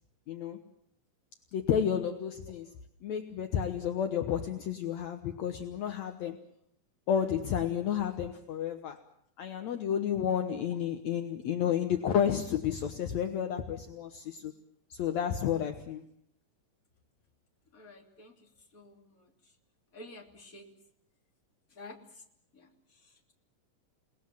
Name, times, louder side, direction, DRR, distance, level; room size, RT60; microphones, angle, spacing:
voice 1, 0.3-0.6 1.5-2.7 3.0-6.4 7.1-9.0 9.4-14.5 14.9-16.0, left 9 dB, 65° left, 6 dB, 2.3 m, -31 dB
voice 2, 17.7-18.3 18.7-18.9 19.9-20.6 21.8-22.0, left 2 dB, 25° left, 2 dB, 3.1 m, -48 dB
29.5 x 19.0 x 7.6 m, 0.70 s
omnidirectional pair, 3.7 m